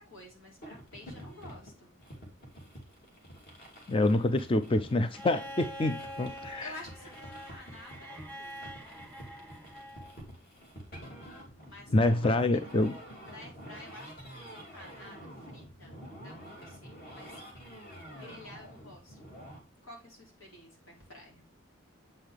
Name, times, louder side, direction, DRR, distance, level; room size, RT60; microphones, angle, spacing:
voice 1, 0.0-2.0 6.6-8.6 11.6-12.6 13.3-15.9 16.2-17.4 17.9-19.3 19.8-21.4, left 1 dB, 85° left, 3.9 m, -51 dB
sound 1, 0.6-19.6, equal, 45° left, 2.7 m, -48 dB
voice 2, 3.9-6.7 11.9-12.9, left 2 dB, 25° left, 0.4 m, -26 dB
Bowed string instrument, 5.1-10.2 11.6-11.7, equal, 10° left, 1.5 m, -45 dB
8.0 x 5.7 x 3.4 m
head